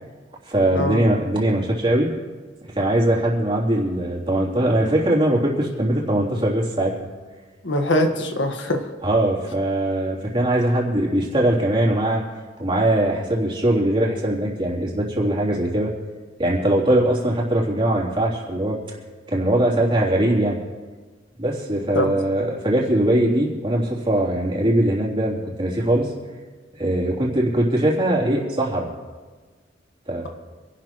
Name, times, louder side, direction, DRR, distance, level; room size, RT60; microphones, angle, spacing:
voice 1, 0.4-2.1 2.7-7.1 9.0-12.2 12.6-15.9 16.4-18.8 19.3-20.6 21.4-26.1 26.7-28.9 30.1-30.3, right 1 dB, 30° right, -4 dB, 3.2 m, -21 dB
voice 2, 7.6-8.9 21.9-22.1, left 1 dB, 85° left, 4 dB, 1.6 m, -22 dB
26.5 x 12.0 x 3.1 m, 1.3 s
head